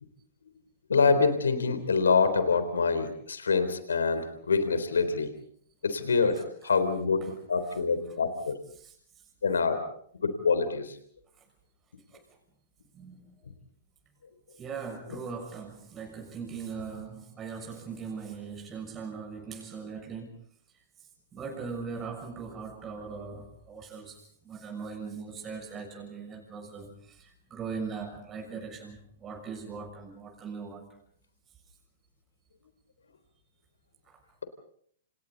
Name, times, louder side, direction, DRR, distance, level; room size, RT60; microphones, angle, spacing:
voice 1, 0.9-5.3 5.8-7.2 7.5-8.6 9.4-9.8 10.2-11.0 15.1-15.2, left 4 dB, 80° left, 3.7 m, -25 dB
voice 2, 12.9-13.3 14.6-20.3 21.3-30.9 34.1-34.2, right 5 dB, 25° right, 6.8 m, -40 dB
29.5 x 29.0 x 4.1 m
hypercardioid pair, 115°, 0 cm